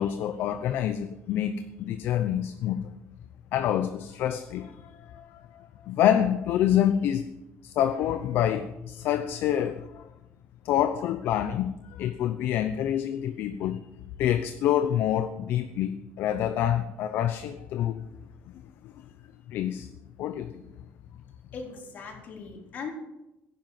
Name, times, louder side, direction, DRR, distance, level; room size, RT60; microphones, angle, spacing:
voice 1, 0.0-2.9 3.5-4.7 5.0-5.4 5.9-7.2 7.6-10.1 10.6-13.8 14.2-18.0 19.5-19.9 20.2-20.6, left 10 dB, 60° left, 9 dB, 0.8 m, -27 dB
voice 2, 21.5-22.9, left 5 dB, 45° left, 1 dB, 4.0 m, -39 dB
16.0 x 10.5 x 7.6 m, 0.95 s
cardioid pair, 165°, 4 cm